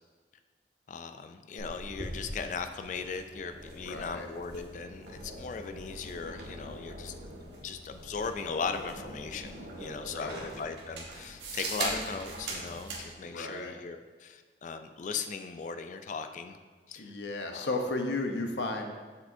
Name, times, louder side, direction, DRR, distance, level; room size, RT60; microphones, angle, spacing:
voice 1, 0.9-16.6 16.9-17.1 17.5-17.7, left 5 dB, 45° left, 8 dB, 0.3 m, -38 dB
sound 1, 1.6-13.0, right 2 dB, 75° right, 1.4 m, -41 dB
voice 2, 3.8-4.3 10.1-10.5 13.2-13.7 17.0-18.9, left 2 dB, 80° left, 4 dB, 0.8 m, -34 dB
7.4 x 6.7 x 2.6 m, 1.4 s
head